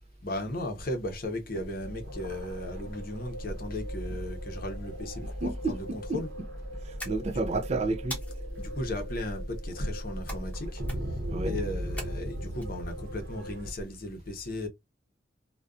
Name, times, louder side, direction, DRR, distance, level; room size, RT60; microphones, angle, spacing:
voice 1, 0.2-6.3 8.6-10.8 11.4-14.7, left 1 dB, 50° left, 0.7 m, -36 dB
sound 1, 1.8-13.7, equal, 70° right, 0.8 m, -37 dB
voice 2, 5.2-6.2 6.8-8.2 11.3-11.6, right 3 dB, 35° right, 0.3 m, -31 dB
sound 2, 7.0-7.6 8.1-8.7 10.3-10.6 10.8-11.3 12.0-12.7, equal, 10° left, 0.9 m, -41 dB
2.4 x 2.2 x 2.3 m
head